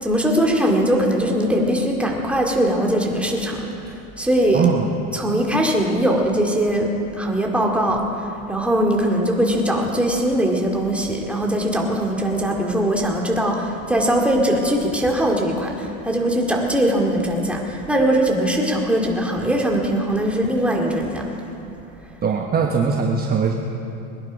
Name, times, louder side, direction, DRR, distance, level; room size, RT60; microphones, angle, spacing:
voice 1, 0.0-3.6 4.2-4.6 5.1-6.9 7.2-21.3, right 1 dB, 5° right, -1 dB, 2.3 m, -21 dB
voice 2, 4.5-5.0 22.2-23.5, right 5 dB, 25° right, 1 dB, 1.2 m, -20 dB
21.5 x 11.0 x 5.2 m, 2.9 s
supercardioid pair, 110°, 39 cm